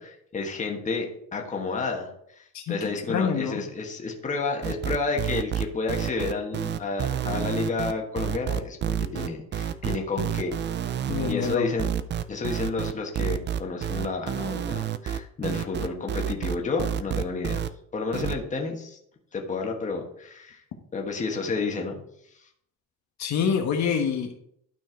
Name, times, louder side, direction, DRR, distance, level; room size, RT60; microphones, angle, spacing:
voice 1, 0.0-10.5 11.3-11.9 12.3-17.6 17.9-19.0 19.3-20.6 20.9-22.0, left 4 dB, 20° left, 1 dB, 1.3 m, -31 dB
voice 2, 2.5-3.6 11.1-11.7 23.2-24.4, left 7 dB, 60° left, 3 dB, 1.2 m, -26 dB
sound 1, 4.6-17.7 18.1-18.4, right 9 dB, 35° right, 0.4 m, -29 dB
12.0 x 4.5 x 4.4 m, 0.71 s
cardioid pair, 150°, 33 cm